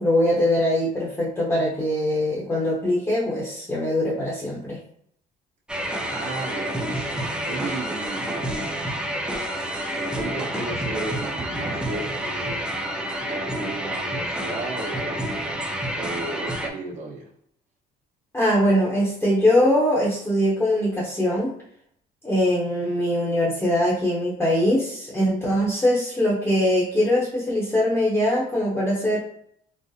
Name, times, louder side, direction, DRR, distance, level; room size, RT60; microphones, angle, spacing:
voice 1, 0.0-4.8 18.3-21.5 22.2-29.2, left 1 dB, 15° left, -7 dB, 0.8 m, -22 dB
sound 1, 5.7-16.7, right 1 dB, 5° right, 0.4 m, -29 dB
voice 2, 6.1-8.7 9.9-12.7 13.2-15.2 16.0-17.3, right 3 dB, 45° right, -4 dB, 1.1 m, -34 dB
3.9 x 2.0 x 2.6 m, 0.69 s
cardioid pair, 110°, 17 cm